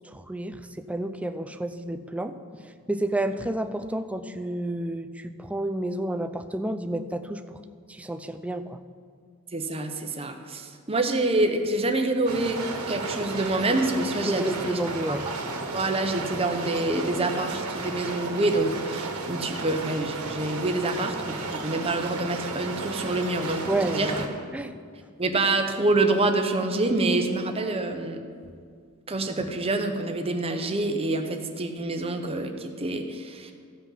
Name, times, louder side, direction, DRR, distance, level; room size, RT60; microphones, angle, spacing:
voice 1, 0.0-2.4 2.9-7.6 7.9-8.8 14.3-15.2 23.7-24.3 24.5-24.7, right 1 dB, 5° right, 9 dB, 0.4 m, -30 dB
voice 2, 9.5-12.6 12.9-14.8 15.1-15.2 15.7-24.1 25.2-28.2 29.1-33.5, right 2 dB, 25° right, 5 dB, 0.8 m, -26 dB
sound 1, 12.3-24.3, right 3 dB, 80° right, 1.5 m, -33 dB
15.0 x 5.8 x 5.7 m, 2.1 s
head